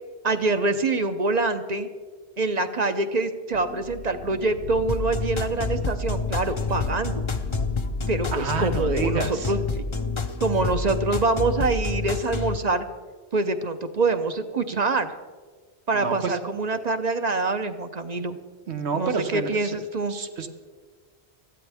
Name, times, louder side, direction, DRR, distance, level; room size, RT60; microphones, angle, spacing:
voice 1, 0.2-1.9 2.4-7.1 8.1-9.8 10.4-12.8 13.3-15.1 15.9-18.4 18.9-20.1, right 3 dB, 45° right, 8 dB, 0.8 m, -25 dB
sound 1, 3.5-11.0, left 6 dB, 60° left, 0.9 m, -36 dB
sound 2, 4.9-12.6, left 3 dB, 30° left, 0.7 m, -28 dB
voice 2, 8.3-9.5 15.9-16.4 18.7-19.8 20.1-20.5, right 5 dB, 80° right, 6 dB, 1.3 m, -29 dB
20.5 x 14.0 x 3.5 m, 1.5 s
omnidirectional pair, 1.1 m